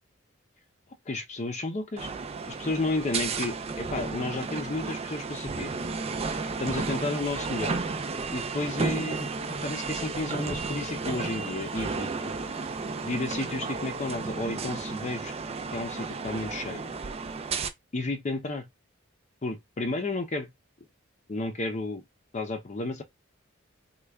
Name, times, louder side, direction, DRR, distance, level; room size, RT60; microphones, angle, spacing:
voice 1, 1.1-2.1 2.5-5.7 6.6-7.8 8.3-12.3 13.0-15.3 15.7-16.9 17.9-18.7 19.4-20.5 21.3-22.0 22.3-23.0, left 2 dB, 35° left, 0.5 m, -32 dB
sound 1, 2.0-17.7, right 4 dB, 30° right, 0.4 m, -33 dB
3.3 x 2.3 x 3.4 m
head